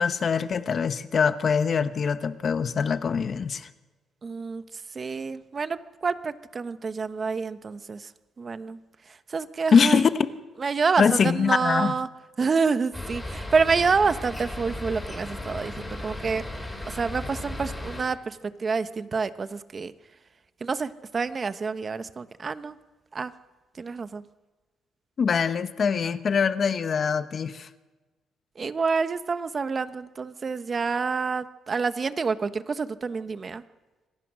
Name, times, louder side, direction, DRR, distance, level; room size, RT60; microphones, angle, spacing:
voice 1, 0.0-3.7 9.7-10.1 11.0-11.9 25.2-27.7, left 6 dB, 50° left, 1.1 m, -23 dB
voice 2, 4.2-8.1 8.4-8.8 9.1-10.0 10.6-12.1 12.4-16.4 16.8-19.9 20.6-22.8 23.1-23.3 23.7-24.2 28.5-33.6, right 5 dB, 40° right, 1.1 m, -28 dB
sound 1, 12.9-18.0, left 1 dB, 10° left, 6.4 m, -36 dB
26.0 x 18.0 x 6.3 m
cardioid pair, 90°, 0 cm